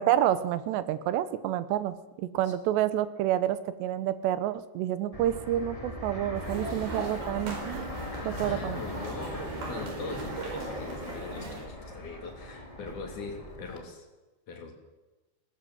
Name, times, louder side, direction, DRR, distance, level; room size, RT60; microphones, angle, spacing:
voice 1, 0.0-8.0 8.2-8.8, right 12 dB, 80° right, 14 dB, 3.0 m, -29 dB
Fixed-wing aircraft airplane, 5.1-13.8, left 1 dB, 15° left, 1.2 m, -40 dB
sound 1, 6.3-11.6, right 3 dB, 60° right, 6.2 m, -39 dB
voice 2, 8.1-14.1 14.5-14.7, left 4 dB, 50° left, 3 dB, 4.2 m, -41 dB
20.0 x 18.5 x 7.9 m, 1.1 s
omnidirectional pair, 5.0 m